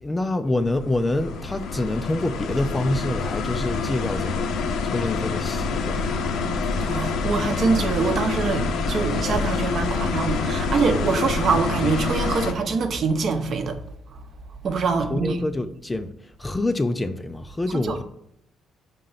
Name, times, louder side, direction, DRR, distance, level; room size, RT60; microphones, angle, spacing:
voice 1, 0.0-4.5 4.8-6.2 15.1-18.0, left 2 dB, 15° left, 0.4 m, -26 dB
sound 1, 0.6-12.5, left 4 dB, 70° left, 0.7 m, -26 dB
voice 2, 6.9-13.8 14.6-15.4 17.8-17.9, right 4 dB, 50° right, 0.8 m, -24 dB
5.6 x 3.7 x 5.6 m
cardioid pair, 125°, 0 cm